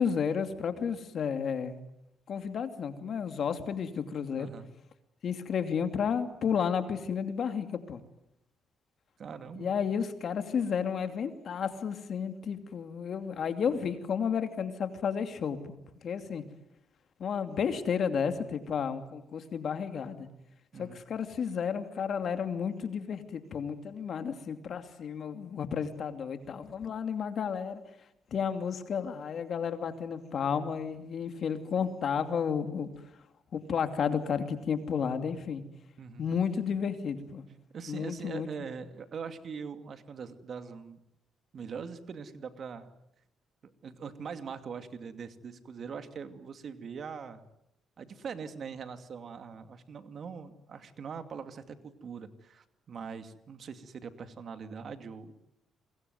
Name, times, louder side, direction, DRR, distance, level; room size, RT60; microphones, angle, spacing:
voice 1, 0.0-1.8 2.3-4.5 5.2-8.0 9.6-15.8 16.0-16.4 17.2-20.3 20.8-27.8 28.3-32.9 33.5-35.6 36.2-37.4 37.9-38.5, left 7 dB, 60° left, 8 dB, 2.7 m, -32 dB
voice 2, 4.4-4.7 9.2-9.8 20.7-21.0 36.0-36.2 37.7-41.0 41.5-42.9 43.8-47.4 48.0-55.3, right 6 dB, 55° right, 9 dB, 2.5 m, -42 dB
28.0 x 22.0 x 9.5 m, 0.82 s
cardioid pair, 90°, 0 cm